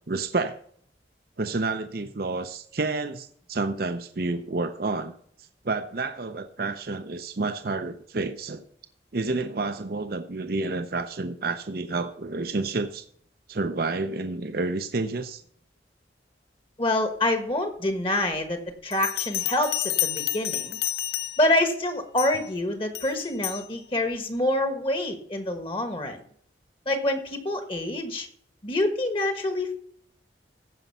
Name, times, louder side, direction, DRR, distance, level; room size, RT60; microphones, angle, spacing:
voice 1, 0.1-0.6 1.4-5.1 5.6-8.6 9.1-13.0 13.5-15.4, right 3 dB, 55° right, 8 dB, 0.6 m, -29 dB
voice 2, 16.8-20.8 21.4-26.2 26.8-28.3 28.6-29.8, left 1 dB, 30° left, 7 dB, 1.3 m, -26 dB
Bell, 18.9-21.6 22.2-22.5 22.9-23.7, left 14 dB, 55° left, 0.5 m, -30 dB
15.0 x 5.4 x 5.4 m, 0.62 s
head